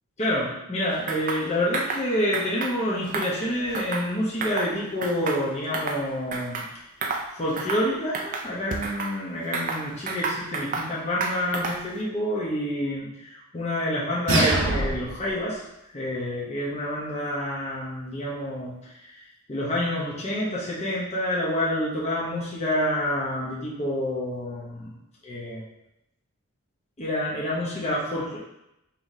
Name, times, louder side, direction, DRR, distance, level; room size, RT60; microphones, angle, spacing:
voice 1, 0.2-6.6 7.4-15.6 15.9-18.7 19.1-19.2 19.5-24.9 25.2-25.6 27.0-28.4, left 1 dB, 30° left, -6 dB, 0.8 m, -28 dB
sound 1, 1.1-1.4 1.7-2.0 2.3-2.7 3.1-4.1 4.4-4.7 5.0-6.0 6.3-6.7 7.0-7.3 7.6-7.9 8.1-9.1 9.5-10.9 11.2-11.9, right 4 dB, 35° right, 0.4 m, -30 dB
sound 2, 14.3-15.3, right 2 dB, 55° right, 0.8 m, -23 dB
5.5 x 3.1 x 2.7 m, 0.89 s
head